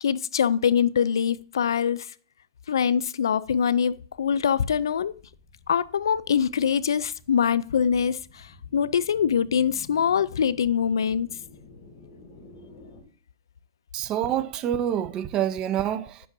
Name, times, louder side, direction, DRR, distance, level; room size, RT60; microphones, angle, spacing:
voice 1, 0.0-2.1 2.7-5.1 5.7-11.3, left 7 dB, 85° left, 0.4 m, -24 dB
sound 1, 3.7-13.0, left 3 dB, 40° left, 2.5 m, -51 dB
voice 2, 13.9-16.3, right 10 dB, 30° right, 0.7 m, -27 dB
10.0 x 7.5 x 2.6 m
hypercardioid pair, 130°, 2 cm